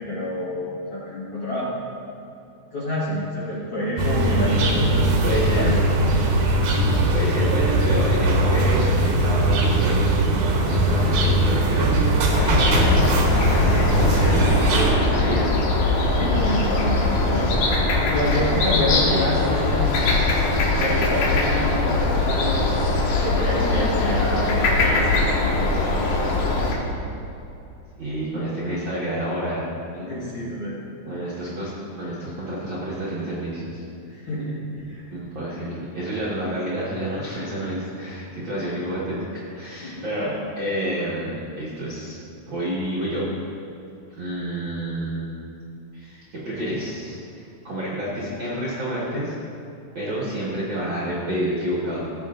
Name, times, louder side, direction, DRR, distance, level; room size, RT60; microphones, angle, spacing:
voice 1, 0.0-1.7 2.7-5.1 5.6-5.7 16.1-17.6 18.1-19.9 20.8-22.7 23.2-25.7 30.1-30.8 34.1-35.1 35.6-35.7 39.8-40.0, left 1 dB, 50° left, -8 dB, 1.9 m, -28 dB
sound 1, 4.0-14.9, right 1 dB, 85° right, 2.9 m, -20 dB
voice 2, 4.9-5.7 7.1-10.2 10.7-13.4 14.0-15.5 18.9-19.2 28.0-29.6 29.9-30.1 31.0-31.7 32.0-33.8 35.1-42.2 42.4-43.3 44.1-45.3 45.9-49.3 49.9-52.1, right 1 dB, 45° right, -9 dB, 1.7 m, -29 dB
sound 2, 12.3-26.7, left 2 dB, 70° left, 2.7 m, -21 dB
17.0 x 7.5 x 2.5 m, 2.7 s
omnidirectional pair, 4.1 m